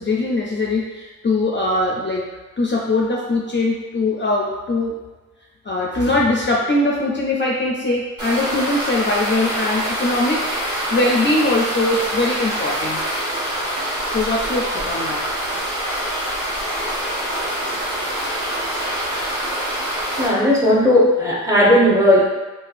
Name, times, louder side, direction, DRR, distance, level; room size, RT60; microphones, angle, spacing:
voice 1, 0.0-2.3 2.6-4.9 5.6-10.4 10.9-13.0 14.1-15.2, left 2 dB, 40° left, -3 dB, 0.4 m, -21 dB
sound 1, 8.2-20.3, right 1 dB, 75° right, 1.2 m, -25 dB
voice 2, 20.2-22.2, left 1 dB, 10° right, -6 dB, 0.9 m, -15 dB
4.1 x 2.3 x 2.5 m, 1.3 s
wide cardioid pair, 85°, 31 cm